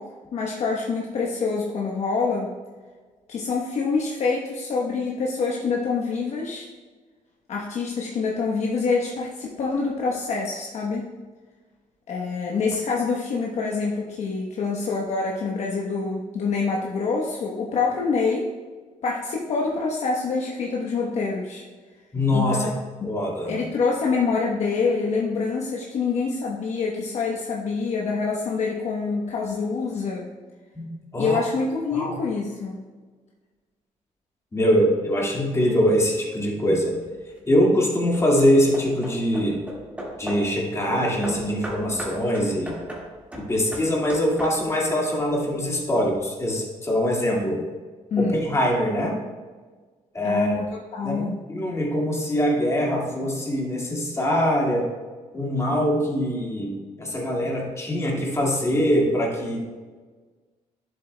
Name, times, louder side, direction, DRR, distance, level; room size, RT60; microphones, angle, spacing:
voice 1, 0.0-2.5 3.3-6.7 7.5-11.1 12.1-18.5 19.0-21.6 22.3-22.7 23.0-23.2 23.4-30.3 31.1-32.8 48.1-48.5 50.2-50.6 50.9-51.4, left 4 dB, 60° left, -2 dB, 1.0 m, -26 dB
voice 2, 22.1-22.7 23.0-23.6 30.7-31.4 31.9-32.2 34.5-37.0 37.5-39.6 40.2-42.8 43.4-47.6 48.2-49.1 50.1-50.6 51.0-51.2 51.5-54.9 55.3-59.6, equal, 20° left, -2 dB, 1.9 m, -23 dB
Hammer / Wood, 37.0-37.5 38.1-40.6 41.2-44.9, right 1 dB, 10° right, 1.8 m, -37 dB
11.0 x 7.5 x 2.2 m, 1.4 s
cardioid pair, 120°, 13 cm